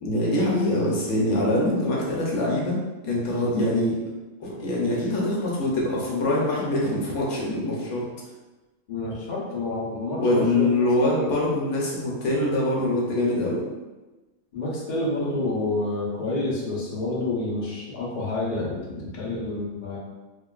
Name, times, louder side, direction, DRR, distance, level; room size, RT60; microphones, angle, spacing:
voice 1, 0.0-4.0 4.4-8.0 10.2-13.6, left 1 dB, 70° left, -4 dB, 1.1 m, -24 dB
voice 2, 8.9-10.7 11.0-11.3 14.5-20.0, left 2 dB, 45° left, -6 dB, 0.6 m, -29 dB
3.0 x 2.5 x 2.3 m, 1.2 s
omnidirectional pair, 1.7 m